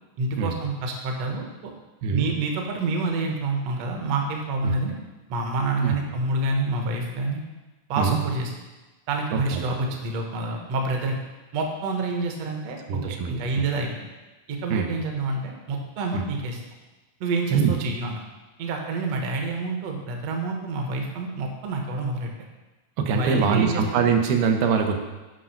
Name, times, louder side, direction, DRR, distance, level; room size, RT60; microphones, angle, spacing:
voice 1, 0.2-1.7 2.1-4.9 5.3-7.4 7.9-8.5 9.1-11.2 11.5-14.0 14.5-16.6 17.2-18.2 18.6-22.3 23.1-24.1, right 3 dB, 65° right, 2 dB, 1.7 m, -28 dB
voice 2, 9.3-10.0 12.9-13.7 14.7-14.9 16.1-16.3 17.5-17.7 23.0-25.0, right 6 dB, 85° right, 4 dB, 2.7 m, -24 dB
8.0 x 5.3 x 5.7 m, 1.2 s
omnidirectional pair, 4.2 m